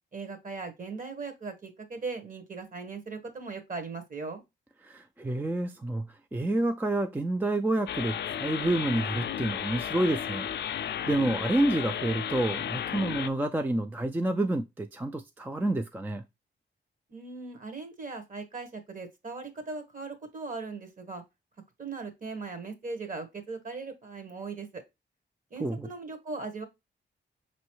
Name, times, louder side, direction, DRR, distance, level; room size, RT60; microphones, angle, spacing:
voice 1, 0.1-4.4 17.1-21.2 21.8-24.8 25.5-26.6, right 4 dB, 45° right, 1.3 m, -39 dB
voice 2, 4.8-10.5 10.7-16.2 25.6-25.9, right 1 dB, 10° right, 0.3 m, -29 dB
sound 1, 7.9-13.3, left 9 dB, 60° left, 0.4 m, -34 dB
5.3 x 3.1 x 3.0 m
cardioid pair, 95°, 20 cm